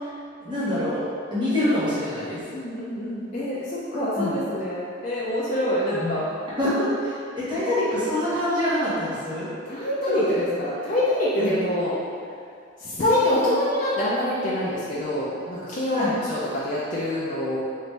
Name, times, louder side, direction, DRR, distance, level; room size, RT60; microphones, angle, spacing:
voice 1, 0.4-2.4 4.2-4.3 5.9-6.1 6.6-9.5 10.1-10.2 11.4-11.6 15.9-16.1, left 1 dB, 25° right, -12 dB, 1.0 m, -25 dB
voice 2, 2.5-6.2 9.7-12.0 12.8-17.6, left 1 dB, 40° left, -9 dB, 0.4 m, -25 dB
3.1 x 2.5 x 3.2 m, 2.4 s
head